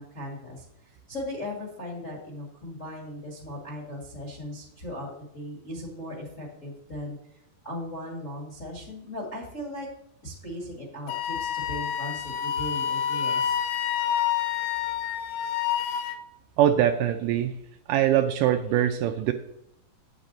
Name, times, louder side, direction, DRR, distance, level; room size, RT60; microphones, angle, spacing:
voice 1, 0.0-7.2 7.6-9.9 10.2-13.6, left 1 dB, 35° left, -3 dB, 1.3 m, -38 dB
Wind instrument woodwind instrument, 11.1-16.2, left 9 dB, 80° left, 2.1 m, -28 dB
voice 2, 16.6-17.6 17.9-19.3, right 11 dB, 85° right, 5 dB, 1.8 m, -22 dB
8.8 x 8.1 x 3.9 m, 0.78 s
omnidirectional pair, 4.3 m